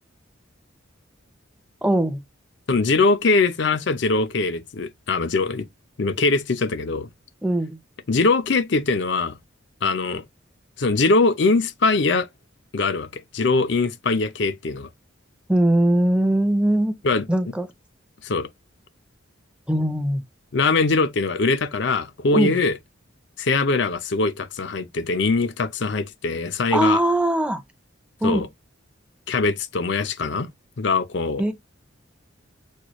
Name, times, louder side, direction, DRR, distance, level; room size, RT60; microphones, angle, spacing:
voice 1, 1.8-2.2 7.4-7.8 15.5-16.9 17.3-17.7 19.7-20.2 22.3-22.6 26.7-27.6 28.2-28.5 31.4-31.5, right 1 dB, 5° right, 0.6 m, -20 dB
voice 2, 2.7-5.7 6.0-7.1 8.1-9.4 9.8-10.2 10.8-12.3 12.7-14.9 17.0-17.3 18.2-18.5 20.5-22.8 23.4-27.0 28.2-28.5 29.3-30.5 30.8-31.4, left 3 dB, 60° left, 0.6 m, -22 dB
6.4 x 2.3 x 3.0 m
head